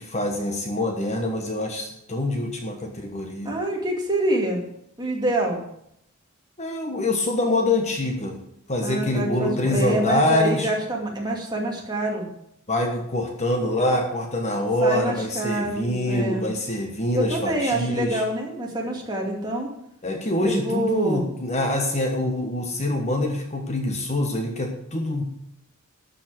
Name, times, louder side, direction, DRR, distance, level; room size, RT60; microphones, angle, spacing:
voice 1, 0.0-3.6 6.6-8.4 8.7-10.7 12.7-18.2 20.0-25.2, left 1 dB, 30° left, 3 dB, 1.3 m, -25 dB
voice 2, 3.4-4.6 5.0-5.6 8.8-12.3 14.8-16.5 17.1-19.7 20.4-21.3, right 1 dB, 20° right, -1 dB, 2.5 m, -26 dB
12.5 x 5.7 x 7.7 m, 0.75 s
head